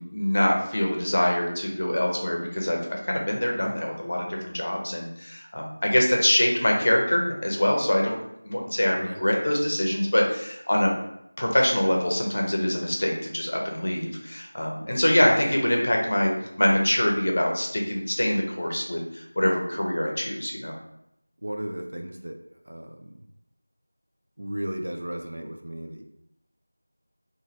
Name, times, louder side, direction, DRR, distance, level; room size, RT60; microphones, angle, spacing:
voice 1, 0.0-8.1 8.4-10.9 11.4-16.3 16.6-20.8, left 1 dB, 45° left, 0 dB, 0.6 m, -24 dB
voice 2, 21.4-22.4 22.6-23.0 24.4-26.0, right 1 dB, 60° right, 3 dB, 0.4 m, -34 dB
3.1 x 2.5 x 2.5 m, 0.80 s
figure-of-eight pair, 175°, 0 cm